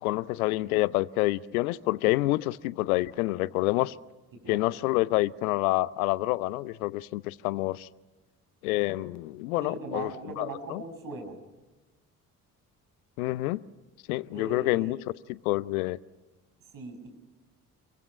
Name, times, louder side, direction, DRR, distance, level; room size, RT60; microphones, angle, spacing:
voice 1, 0.0-3.9 4.5-7.9 8.6-10.1 10.4-10.8 13.2-13.6 14.1-15.0 15.3-16.0, left 19 dB, 70° left, 20 dB, 0.7 m, -27 dB
voice 2, 9.6-11.3 14.3-15.0 16.7-17.1, right 3 dB, 45° right, 5 dB, 6.6 m, -39 dB
29.5 x 23.5 x 6.0 m, 1.1 s
figure-of-eight pair, 45°, 45 cm